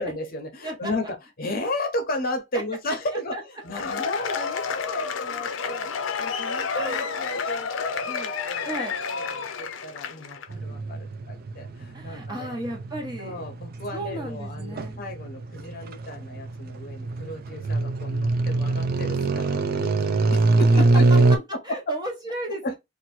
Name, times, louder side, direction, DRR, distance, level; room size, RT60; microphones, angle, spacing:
voice 1, 0.0-7.7 8.0-12.6 13.2-21.1 21.3-21.8 22.5-22.7, left 1 dB, 50° left, 0.9 m, -34 dB
Cheering / Applause / Crowd, 3.6-10.5, left 5 dB, 80° left, 0.5 m, -30 dB
voice 2, 6.7-7.0 8.6-9.0 11.9-13.4 13.9-15.0 21.1-21.2 21.6-22.7, right 1 dB, 20° right, 1.1 m, -34 dB
sound 1, 10.5-21.4, right 2 dB, 50° right, 0.4 m, -23 dB
2.9 x 2.5 x 4.2 m
head